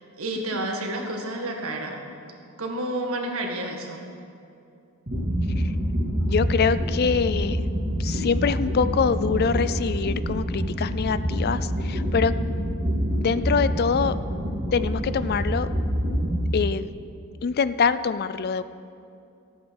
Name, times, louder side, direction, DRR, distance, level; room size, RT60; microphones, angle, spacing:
voice 1, 0.0-2.0 2.6-4.0, right 1 dB, 75° right, 1 dB, 1.8 m, -30 dB
sound 1, 5.1-16.3, equal, 35° right, 2.4 m, -26 dB
voice 2, 6.2-7.6 8.0-12.3 13.2-14.2 14.7-15.7 16.5-16.9 17.4-18.6, left 6 dB, 45° left, 14 dB, 0.4 m, -24 dB
14.5 x 8.9 x 6.3 m, 2.6 s
head